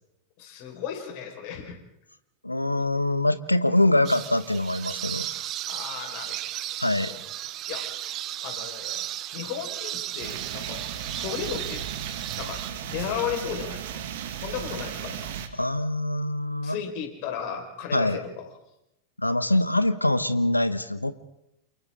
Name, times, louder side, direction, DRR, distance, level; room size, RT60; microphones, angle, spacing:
voice 1, 0.4-1.8 5.7-6.4 7.1-7.2 7.7-8.1 8.4-9.0 9.3-11.8 12.4-12.6 12.9-14.0 14.4-15.3 16.6-18.5, left 8 dB, 45° left, 3 dB, 5.1 m, -35 dB
voice 2, 2.4-5.3 6.8-7.2 15.5-16.8 17.9-18.2 19.2-21.1, left 1 dB, 85° left, 14 dB, 1.1 m, -24 dB
sound 1, 4.0-12.7, right 13 dB, 35° right, 1.0 m, -35 dB
sound 2, 10.2-15.5, right 9 dB, 55° right, 2.2 m, -35 dB
29.0 x 28.0 x 3.9 m, 0.85 s
figure-of-eight pair, 90°, 0 cm